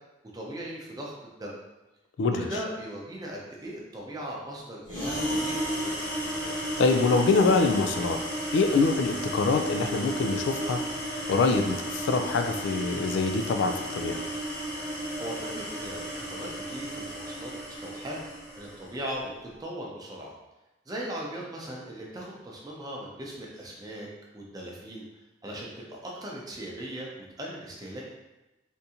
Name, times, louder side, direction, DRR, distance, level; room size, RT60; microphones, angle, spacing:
voice 1, 0.3-1.6 2.3-5.9 8.6-8.8 15.2-18.2 18.6-20.3 20.9-24.1 24.3-25.0 25.4-25.7 26.0-28.0, right 1 dB, 20° right, -3 dB, 0.6 m, -38 dB
sound 1, 4.9-18.8, right 1 dB, 50° left, 1.1 m, -33 dB
voice 2, 6.5-8.2 8.5-10.8 11.3-14.2, left 4 dB, 85° left, 7 dB, 0.3 m, -25 dB
3.5 x 2.6 x 2.8 m, 1.0 s
head